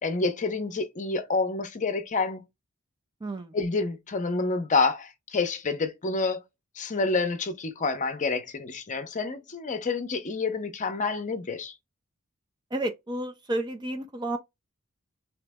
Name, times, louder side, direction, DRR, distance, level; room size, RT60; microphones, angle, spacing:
voice 1, 0.0-2.4 3.5-6.4 6.8-11.7, left 3 dB, 35° left, 0.6 m, -28 dB
voice 2, 3.2-3.5 12.7-14.4, right 1 dB, 20° right, 0.4 m, -31 dB
3.1 x 2.9 x 3.5 m
head